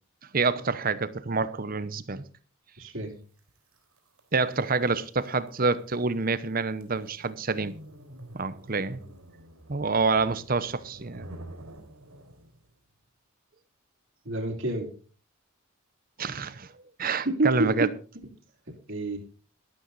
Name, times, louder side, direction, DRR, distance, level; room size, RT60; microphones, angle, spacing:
voice 1, 0.3-2.2 4.3-7.8 8.3-9.0 9.7-11.3 16.2-16.7 17.0-17.9, right 4 dB, 40° right, 0.8 m, -27 dB
voice 2, 2.8-3.2 14.2-14.9 17.2-17.9 18.9-19.2, right 2 dB, 60° right, 3.0 m, -28 dB
sound 1, 3.4-12.7, right 1 dB, 85° right, 4.4 m, -49 dB
13.0 x 12.5 x 4.1 m
head